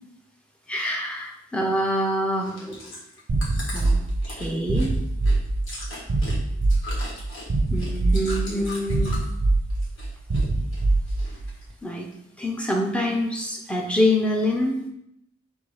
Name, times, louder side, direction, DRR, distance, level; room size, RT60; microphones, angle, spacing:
voice 1, 0.7-2.8 3.7-4.9 7.7-9.2 11.8-12.1 12.4-14.7, left 1 dB, 5° left, 0 dB, 0.5 m, -25 dB
Chewing mastication, 2.3-9.4 9.7-10.5 10.7-11.6 12.1-12.2, left 2 dB, 85° left, 1.5 m, -39 dB
sound 1, 3.3-11.6, right 2 dB, 65° right, 0.4 m, -24 dB
3.6 x 2.7 x 4.7 m, 0.78 s
head